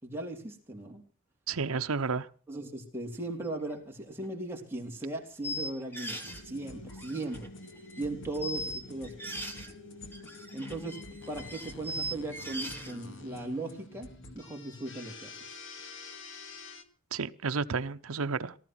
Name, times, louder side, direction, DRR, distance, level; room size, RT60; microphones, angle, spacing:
voice 1, 0.0-1.0 2.5-7.5 8.0-9.1 9.6-9.7 10.5-15.4, right 2 dB, 10° right, 3.2 m, -38 dB
voice 2, 1.5-2.3 17.1-18.6, right 4 dB, 90° right, 0.8 m, -31 dB
sound 1, 3.7-3.8 4.2-4.3 5.4-6.4 6.9-8.0 8.3-9.7 10.1-13.0, equal, 10° left, 2.3 m, -39 dB
sound 2, 6.2-16.8, left 2 dB, 60° left, 2.0 m, -47 dB
18.5 x 13.0 x 6.0 m
head